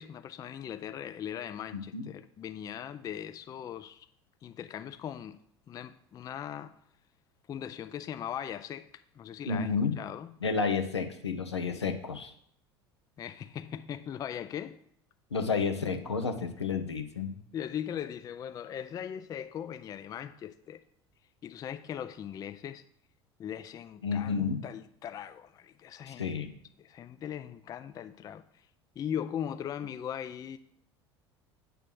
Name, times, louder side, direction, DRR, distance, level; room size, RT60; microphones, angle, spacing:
voice 1, 0.0-4.1 4.4-5.4 5.7-6.8 7.5-10.4 11.7-12.0 13.2-14.8 17.5-20.8 21.4-22.8 23.4-26.3 26.8-28.6 29.0-30.6, left 9 dB, 25° left, 0.3 m, -39 dB
voice 2, 9.5-10.0 10.4-12.3 15.3-17.4 24.0-24.6 26.1-26.5, left 5 dB, 85° left, 0.7 m, -31 dB
7.4 x 3.4 x 6.1 m
figure-of-eight pair, 70°, 14 cm